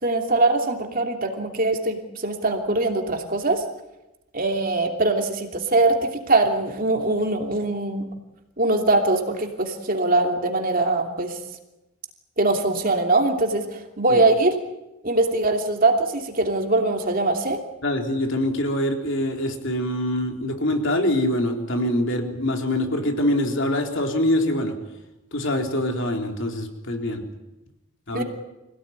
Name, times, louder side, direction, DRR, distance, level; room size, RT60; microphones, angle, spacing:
voice 1, 0.0-3.6 4.3-8.1 8.6-11.4 12.4-14.6 15.0-17.6 28.1-28.2, right 2 dB, 40° right, 3 dB, 2.9 m, -22 dB
voice 2, 17.8-24.7 25.3-27.2 28.1-28.2, left 1 dB, 55° left, 3 dB, 3.9 m, -24 dB
26.5 x 17.5 x 9.6 m, 0.98 s
head